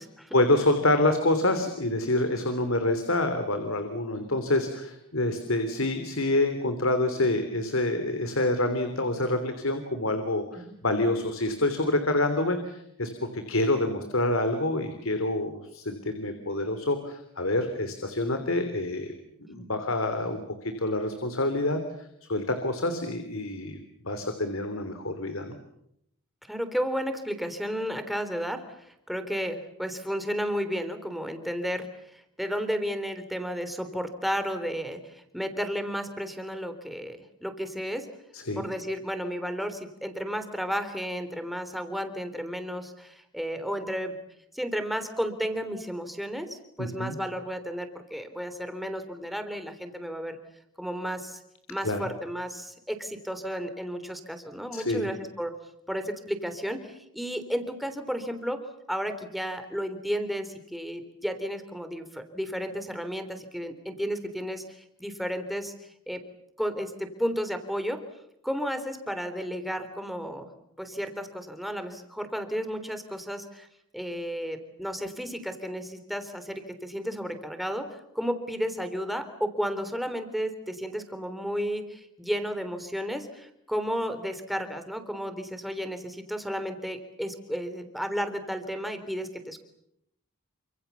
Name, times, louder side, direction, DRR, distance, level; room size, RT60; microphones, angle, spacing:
voice 1, 0.3-19.1 19.5-21.8 22.3-25.6 38.3-38.6 46.8-47.2 51.8-52.0 54.7-55.1, left 2 dB, 70° left, 8 dB, 3.4 m, -27 dB
voice 2, 26.5-38.1 38.5-44.1 44.5-50.4 50.8-51.4 51.7-55.5 55.9-58.6 58.9-66.2 66.6-68.0 68.4-70.5 70.8-73.7 73.9-89.6, equal, ahead, 8 dB, 3.4 m, -33 dB
29.0 x 26.5 x 7.1 m, 0.78 s
head